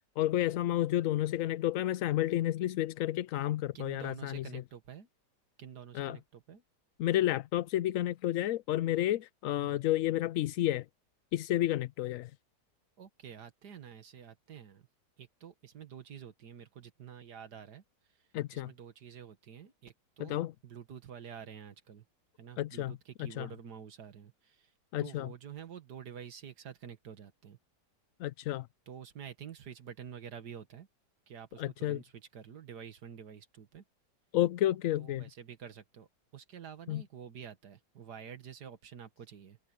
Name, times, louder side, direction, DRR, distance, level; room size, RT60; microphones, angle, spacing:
voice 1, 0.2-4.4 5.9-6.2 7.0-10.8 11.3-12.3 18.3-18.7 20.2-20.5 22.6-22.9 23.4-23.5 24.9-25.3 28.2-28.7 31.6-32.0 34.3-35.2 36.9-37.0, left 14 dB, 75° left, 0.7 m, -31 dB
voice 2, 3.7-5.1 5.6-6.6 9.6-9.8 13.0-14.9 15.2-17.8 18.1-22.1 22.4-24.7 25.0-27.6 28.9-30.9 31.3-33.8 35.0-36.1 36.3-39.6, right 8 dB, 70° right, 2.1 m, -48 dB
omnidirectional pair, 1.8 m